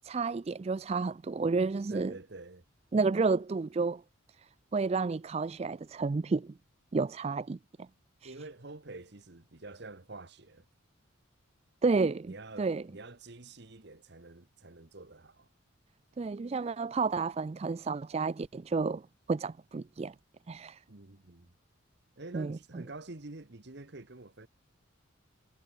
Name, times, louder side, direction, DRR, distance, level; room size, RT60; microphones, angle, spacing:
voice 1, 0.0-2.1 2.9-4.0 4.4-6.5 6.9-7.9 8.2-8.3 11.8-12.8 16.2-20.1 20.5-20.8 22.3-22.8, right 4 dB, 30° right, 0.3 m, -31 dB
voice 2, 1.9-2.6 8.2-10.7 12.3-15.5 20.9-21.5 22.2-24.5, right 2 dB, 55° right, 1.3 m, -47 dB
head